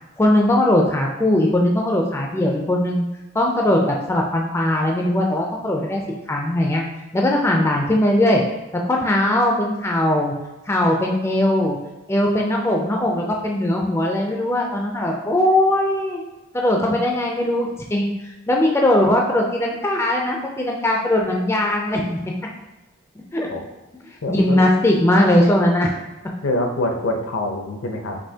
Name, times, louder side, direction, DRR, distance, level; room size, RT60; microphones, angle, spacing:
voice 1, 0.2-3.0 3.3-6.0 6.3-6.8 7.1-8.4 8.8-10.3 10.7-11.8 12.1-16.2 16.5-22.2 23.3-23.5 24.3-25.9, left 1 dB, 10° left, 0 dB, 0.3 m, -19 dB
voice 2, 24.2-24.6 26.4-28.2, left 1 dB, 70° left, 3 dB, 0.6 m, -25 dB
5.3 x 2.9 x 2.7 m, 1.0 s
head